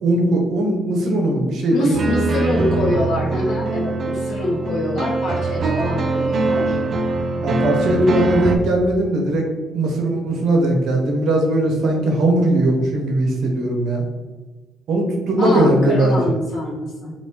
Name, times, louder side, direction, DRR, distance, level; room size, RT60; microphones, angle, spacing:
voice 1, 0.0-1.9 7.4-9.5 9.7-14.0 14.9-16.3, right 1 dB, 75° right, 1 dB, 0.8 m, -19 dB
voice 2, 1.7-6.8 8.1-8.3 15.4-17.1, left 1 dB, 80° left, -4 dB, 1.2 m, -25 dB
sound 1, 1.9-8.6, right 3 dB, 50° right, 0.4 m, -22 dB
3.5 x 2.6 x 2.8 m, 1.3 s
cardioid pair, 90°, 0 cm